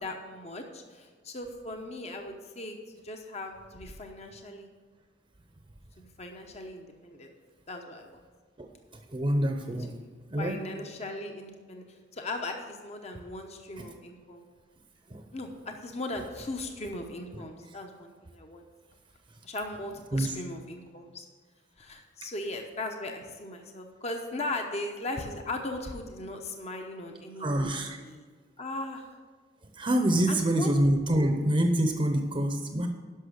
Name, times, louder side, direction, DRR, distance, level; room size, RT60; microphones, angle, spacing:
voice 1, 0.0-2.8 3.0-4.7 6.0-7.3 7.7-8.2 10.0-10.1 10.4-11.8 12.1-14.5 15.3-18.6 19.4-21.3 21.8-28.3 28.6-29.1 30.3-30.7, left 2 dB, 35° left, 4 dB, 1.0 m, -38 dB
voice 2, 9.1-9.9 10.3-10.6 15.1-15.2 20.1-20.3 27.4-28.0 29.8-32.9, right 1 dB, 30° right, 4 dB, 0.8 m, -26 dB
11.5 x 6.1 x 6.5 m, 1.5 s
head